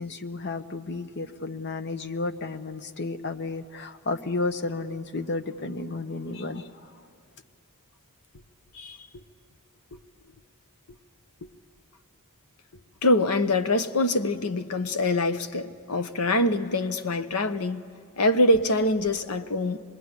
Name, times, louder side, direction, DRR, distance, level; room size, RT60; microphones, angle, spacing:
voice 1, 0.0-7.0, left 3 dB, 50° left, 1.1 m, -32 dB
voice 2, 8.7-9.2 9.9-10.0 11.4-11.5 13.0-17.8 18.2-19.8, left 1 dB, 85° left, 1.0 m, -24 dB
26.5 x 20.5 x 9.7 m
head